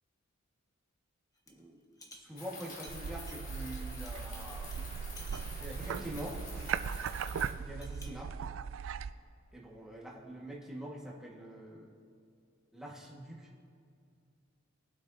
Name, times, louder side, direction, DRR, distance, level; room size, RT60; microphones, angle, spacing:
sound 1, 1.3-1.6 1.9-4.4 4.7-4.8 5.1-7.2 7.6-8.2, left 1 dB, 20° left, 1.2 m, -56 dB
voice 1, 1.5-1.8 2.1-4.7 5.6-6.4 7.6-8.3 9.5-11.9 12.7-13.6, right 1 dB, ahead, -4 dB, 1.8 m, -45 dB
sound 2, 2.4-7.5, left 2 dB, 45° left, 2.4 m, -48 dB
sound 3, 2.9-9.1, right 7 dB, 70° right, 0.4 m, -38 dB
21.5 x 8.1 x 2.8 m, 2.4 s
head